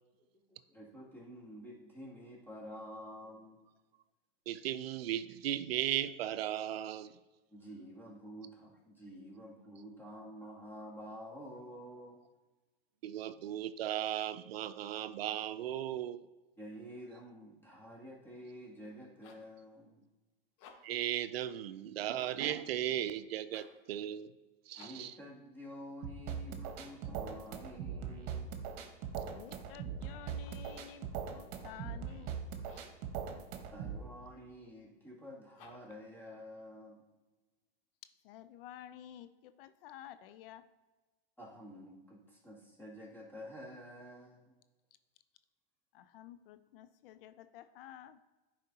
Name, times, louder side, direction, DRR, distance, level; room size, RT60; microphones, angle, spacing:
voice 1, 0.5-3.6 7.5-12.2 16.6-20.1 24.8-28.6 33.7-37.0 41.4-44.5, equal, 5° left, -5 dB, 2.4 m, -49 dB
voice 2, 4.5-7.1 13.0-16.2 20.8-24.3 24.7-25.1, right 11 dB, 85° right, 13 dB, 0.5 m, -36 dB
sound 1, 19.2-19.6 20.5-21.1 23.4-23.9 24.7-25.2 30.2-30.8 32.6-33.0 35.5-36.1, left 5 dB, 50° left, 1.2 m, -59 dB
sound 2, 26.0-34.0, right 7 dB, 55° right, 1.2 m, -41 dB
voice 3, 29.2-32.3 38.2-40.6 45.9-48.2, left 11 dB, 70° left, 13 dB, 0.5 m, -52 dB
10.5 x 4.9 x 2.8 m, 1.2 s
hypercardioid pair, 115°, 29 cm